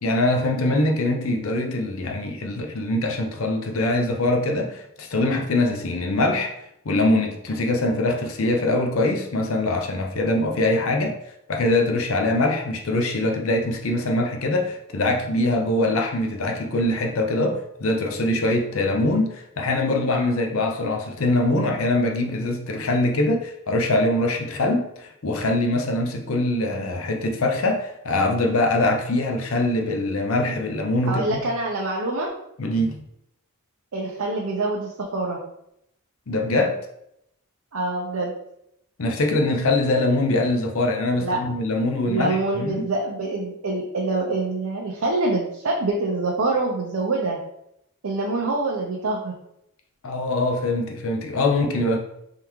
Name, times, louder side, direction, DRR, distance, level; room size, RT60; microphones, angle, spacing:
voice 1, 0.0-6.5 6.8-11.2 11.5-31.4 32.6-33.0 36.3-36.8 39.0-42.9 50.0-52.0, left 2 dB, 65° left, 3 dB, 0.6 m, -23 dB
voice 2, 31.0-32.3 33.9-35.4 37.7-38.3 41.2-41.4 42.0-47.4 48.0-49.3, right 2 dB, 65° right, -2 dB, 0.6 m, -25 dB
3.7 x 3.5 x 3.0 m, 0.78 s
head